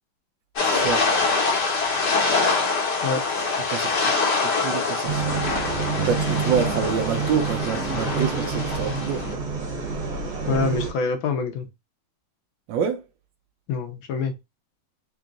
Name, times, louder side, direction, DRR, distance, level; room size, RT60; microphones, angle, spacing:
sound 1, 0.6-9.3, left 4 dB, 60° left, 1.5 m, -25 dB
voice 1, 0.6-1.1 3.7-5.3 6.0-9.2 12.7-13.0, right 7 dB, 75° right, 1.1 m, -27 dB
sound 2, 5.1-10.9, right 5 dB, 55° right, 1.6 m, -27 dB
voice 2, 10.5-11.7 13.7-14.3, left 4 dB, 75° left, 1.4 m, -25 dB
3.8 x 2.4 x 3.6 m
omnidirectional pair, 2.3 m